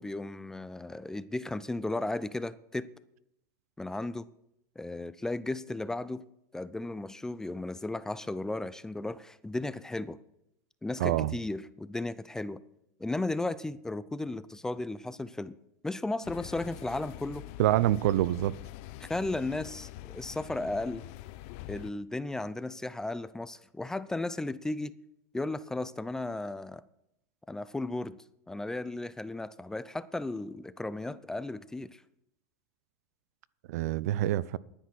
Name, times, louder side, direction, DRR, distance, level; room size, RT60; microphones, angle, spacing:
voice 1, 0.0-2.9 3.8-4.3 4.8-6.3 6.5-10.2 10.8-12.6 13.0-15.6 15.8-17.4 19.0-21.0 21.7-24.9 25.3-26.8 27.5-28.2 28.5-32.0, left 2 dB, 5° left, 0.4 m, -35 dB
voice 2, 11.0-11.3 17.6-18.5 33.7-34.6, right 14 dB, 70° right, 0.5 m, -26 dB
sound 1, 16.2-21.9, left 16 dB, 55° left, 0.6 m, -45 dB
10.5 x 9.9 x 6.2 m
supercardioid pair, 135°, 9 cm